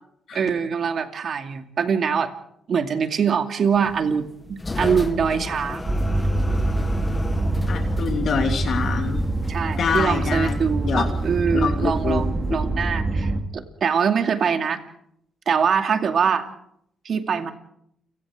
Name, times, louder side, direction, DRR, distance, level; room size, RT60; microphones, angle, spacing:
voice 1, 0.3-2.3 2.7-5.9 9.5-14.8 15.5-16.5 17.0-17.5, right 6 dB, 55° right, 6 dB, 2.4 m, -23 dB
sound 1, 3.7-12.8, left 3 dB, 20° left, 1.4 m, -35 dB
sound 2, 5.9-13.4, right 2 dB, 25° right, 2.7 m, -25 dB
voice 2, 7.7-9.2 9.8-10.5 10.8-11.0 11.5-12.2, left 6 dB, 60° left, 4 dB, 3.0 m, -25 dB
30.0 x 18.5 x 5.0 m, 0.73 s
cardioid pair, 95°, 0 cm